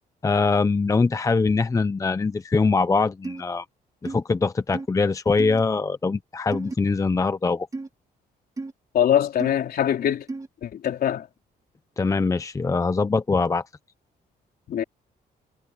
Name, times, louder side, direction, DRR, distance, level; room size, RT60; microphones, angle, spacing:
voice 1, 0.2-3.6 4.0-7.7 12.0-13.6, left 4 dB, 20° left, 0.7 m, -23 dB
sound 1, 3.2-3.4 4.0-4.2 4.7-4.9 5.4-5.6 6.5-6.8 7.7-7.9 8.6-8.7 9.4-9.5 10.3-10.5, right 3 dB, 20° right, 1.8 m, -32 dB
voice 2, 8.9-10.3 10.6-11.3 14.7-14.8, left 10 dB, 65° left, 4.0 m, -22 dB
cardioid pair, 130°, 17 cm